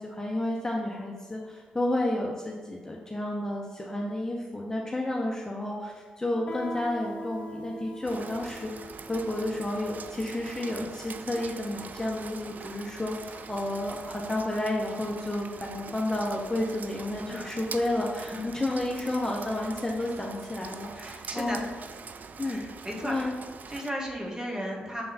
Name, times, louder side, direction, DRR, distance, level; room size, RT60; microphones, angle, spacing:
voice 1, 0.0-21.6 22.4-22.6 23.0-23.3, left 1 dB, 15° left, -2 dB, 0.9 m, -31 dB
Guitar, 6.5-11.9, equal, 50° left, 1.2 m, -43 dB
Rain, 8.0-23.9, right 5 dB, 50° right, 0.4 m, -43 dB
voice 2, 18.2-18.5 20.9-21.9 22.4-23.3 23.7-25.0, equal, 20° right, -1 dB, 1.7 m, -35 dB
6.7 x 3.6 x 4.3 m, 1.5 s
hypercardioid pair, 40°, 4 cm